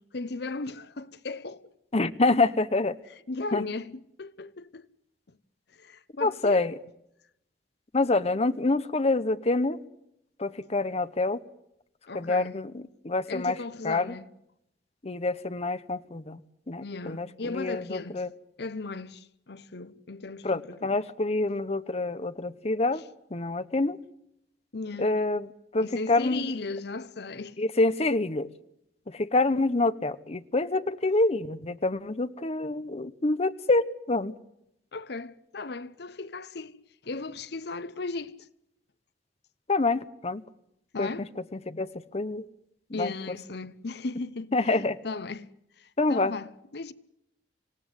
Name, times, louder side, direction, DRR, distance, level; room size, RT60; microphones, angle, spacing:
voice 1, 0.0-1.7 3.3-4.9 5.3-5.4 5.7-6.7 12.1-12.6 13.3-14.3 16.8-18.3 18.6-21.0 22.9-23.0 24.7-25.2 25.8-27.6 34.9-36.8 37.0-38.5 40.9-41.3 42.9-45.5 45.8-46.9, left 3 dB, 65° left, 0.9 m, -37 dB
voice 2, 1.9-3.0 3.5-3.6 6.2-6.7 7.9-9.8 10.4-11.4 12.1-13.6 13.8-14.1 15.0-16.4 16.7-18.3 20.4-23.0 23.3-24.0 25.0-26.5 27.6-28.5 29.1-34.3 39.7-40.4 41.0-41.3 41.5-42.4 43.0-43.1 44.5-45.0 46.0-46.3, left 2 dB, 35° left, 0.9 m, -27 dB
27.0 x 17.5 x 9.6 m
head